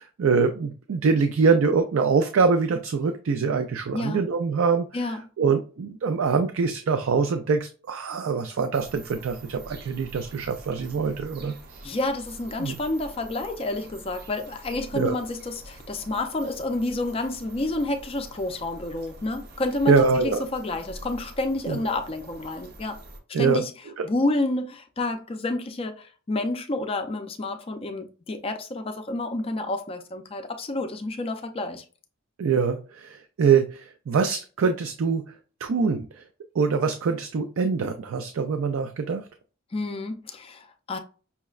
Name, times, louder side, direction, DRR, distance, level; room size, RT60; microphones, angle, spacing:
voice 1, 0.0-4.9 5.4-12.0 12.6-12.7 14.9-15.2 19.9-20.4 21.7-21.8 23.3-23.6 24.0-24.1 32.4-35.2 35.6-36.2 36.5-39.3, right 5 dB, 70° right, 0.4 m, -24 dB
sound 1, 8.7-23.2, right 1 dB, 50° right, 0.7 m, -46 dB
voice 2, 11.8-23.0 23.4-23.7 24.0-31.8 39.7-41.0, left 2 dB, 25° left, 0.4 m, -29 dB
5.6 x 2.1 x 2.3 m
head